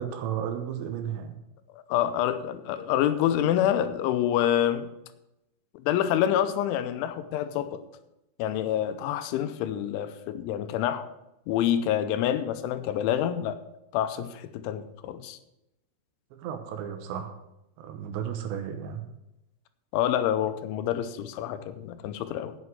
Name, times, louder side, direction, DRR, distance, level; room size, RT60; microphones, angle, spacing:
voice 1, 0.0-1.4 16.3-17.3 17.8-19.0, right 8 dB, 75° right, 7 dB, 3.0 m, -33 dB
voice 2, 1.7-4.9 5.9-7.8 8.4-11.1 11.5-13.6 13.9-15.4 19.9-22.6, left 11 dB, 85° left, 11 dB, 3.0 m, -27 dB
8.1 x 7.7 x 7.8 m, 0.90 s
omnidirectional pair, 5.5 m